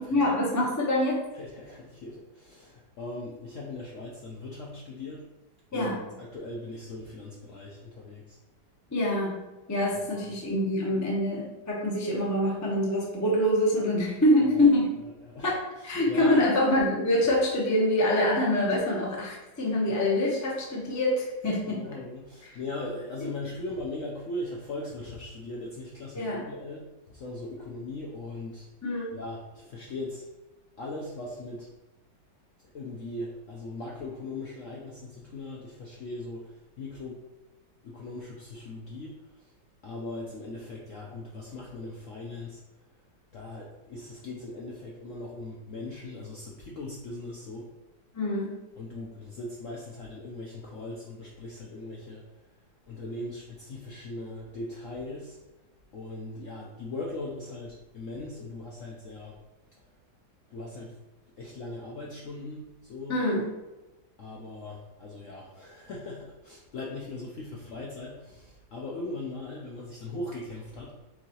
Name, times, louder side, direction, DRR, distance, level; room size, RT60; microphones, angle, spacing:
voice 1, 0.1-1.3 5.7-6.1 8.9-14.9 15.4-21.9 26.1-26.4 28.8-29.2 48.1-48.6 63.1-63.5, left 1 dB, 25° left, -3 dB, 0.3 m, -25 dB
voice 2, 1.3-5.2 5.7-8.4 10.0-10.3 14.4-14.7 15.2-16.4 21.7-28.7 29.1-30.3 30.8-31.7 32.7-37.2 37.8-39.5 39.8-42.6 43.3-47.7 48.7-52.4 52.9-55.4 55.9-59.4 60.5-61.0 61.4-63.2 64.2-71.1, left 2 dB, 70° left, -3 dB, 0.7 m, -39 dB
4.8 x 3.6 x 2.8 m, 1.0 s
omnidirectional pair, 2.0 m